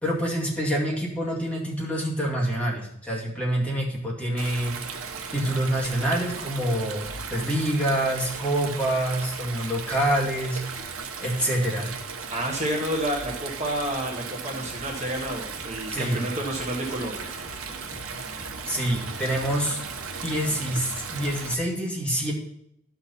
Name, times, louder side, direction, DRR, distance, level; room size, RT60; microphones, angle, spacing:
voice 1, 0.0-4.8 5.3-7.0 7.3-10.6 11.2-11.9 15.9-16.3 18.7-19.8 20.2-22.3, right 1 dB, 5° left, -5 dB, 2.1 m, -26 dB
Stream, 4.4-21.5, right 5 dB, 90° right, 1.0 m, -36 dB
voice 2, 12.3-17.3, right 1 dB, 35° right, -1 dB, 1.4 m, -30 dB
sound 1, 14.4-21.0, left 1 dB, 35° left, 1.4 m, -47 dB
11.5 x 5.9 x 4.2 m, 0.74 s
head